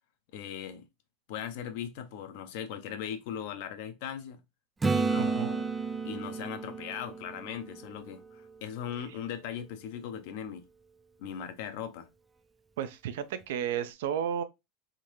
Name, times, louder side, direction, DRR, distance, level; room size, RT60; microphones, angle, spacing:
voice 1, 0.3-0.9 1.3-4.4 4.9-5.7 6.0-10.7 11.2-12.1, left 9 dB, 70° left, 0.7 m, -39 dB
Acoustic guitar / Strum, 4.8-8.6 13.4-13.5, right 4 dB, 15° right, 0.3 m, -32 dB
voice 2, 5.2-5.5 9.1-9.2 12.8-14.4, right 9 dB, 85° right, 0.5 m, -33 dB
3.6 x 2.7 x 3.0 m
supercardioid pair, 135°, 0 cm